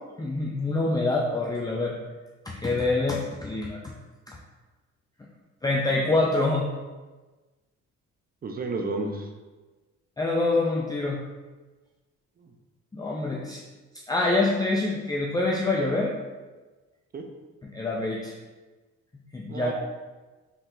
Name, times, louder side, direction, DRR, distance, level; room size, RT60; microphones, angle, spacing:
voice 1, 0.2-1.9 2.5-3.9 4.3-4.4 5.6-6.7 10.2-11.2 12.9-13.6 14.1-16.1 17.6-18.3 19.3-19.7, left 2 dB, 15° left, -3 dB, 0.4 m, -26 dB
voice 2, 8.4-9.3 12.4-12.5 17.1-17.2 19.5-19.7, right 3 dB, 30° right, 4 dB, 0.6 m, -31 dB
4.3 x 3.6 x 2.5 m, 1.2 s
cardioid pair, 90°, 30 cm